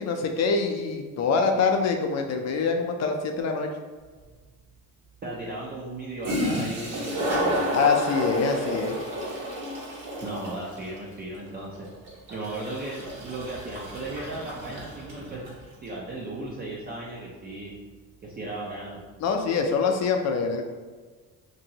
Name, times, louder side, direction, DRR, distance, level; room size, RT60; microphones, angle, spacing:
voice 1, 0.0-3.7 7.7-9.0 19.2-20.7, left 5 dB, 50° left, 4 dB, 0.4 m, -25 dB
Toilet flush, 4.2-4.3 5.9-6.0 6.2-15.6, equal, 60° right, 1.2 m, -31 dB
voice 2, 5.2-7.6 10.2-11.9 12.3-15.4 15.8-17.8 18.2-19.0, right 2 dB, 30° right, -4 dB, 0.4 m, -36 dB
2.9 x 2.6 x 2.7 m, 1.4 s
cardioid pair, 135°, 36 cm